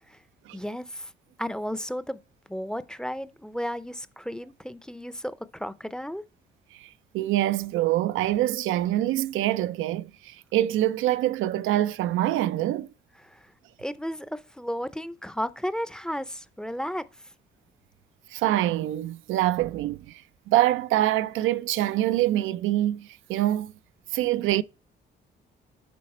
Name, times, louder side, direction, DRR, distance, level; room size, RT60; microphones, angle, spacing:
voice 1, 0.5-1.1 1.4-2.2 2.5-6.2 13.2-13.5 13.8-17.0, equal, 5° left, 0.5 m, -33 dB
voice 2, 7.1-12.9 18.3-20.2 20.5-23.7 24.1-24.6, right 14 dB, 85° right, 0.4 m, -25 dB
11.5 x 4.1 x 4.3 m
cardioid pair, 90°, 20 cm